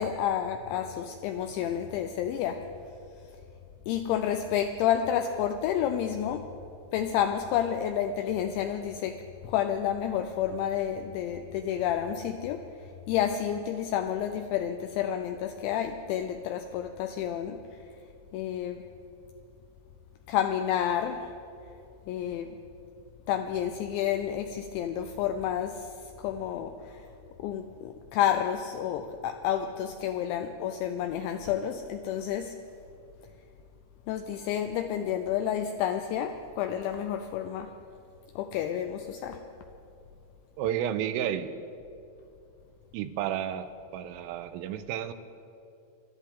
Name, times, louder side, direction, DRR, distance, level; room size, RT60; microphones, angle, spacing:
voice 1, 0.0-2.7 3.9-6.5 6.9-17.8 18.3-18.8 20.3-21.3 22.1-22.6 23.3-27.1 27.4-32.6 34.1-37.8 38.4-39.5, left 9 dB, 85° left, 2.7 m, -30 dB
voice 2, 40.6-41.5 42.9-43.7 43.9-45.1, right 10 dB, 90° right, 3.3 m, -31 dB
25.5 x 12.5 x 3.7 m
omnidirectional pair, 5.7 m